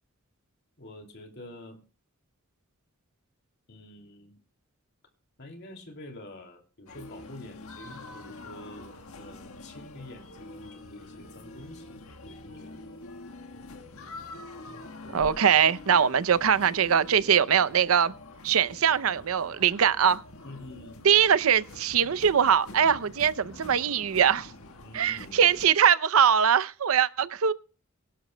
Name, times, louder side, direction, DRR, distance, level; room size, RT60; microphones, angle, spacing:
voice 1, 0.8-1.8 3.7-4.4 5.4-12.8 15.0-15.3 20.4-21.1 24.8-25.4, left 1 dB, 55° left, 2.6 m, -47 dB
sound 1, 6.9-25.7, left 2 dB, 80° left, 1.6 m, -45 dB
voice 2, 15.1-18.1 18.4-20.2 21.0-24.5 24.9-27.5, right 8 dB, 75° right, 0.6 m, -22 dB
23.5 x 11.5 x 2.2 m
head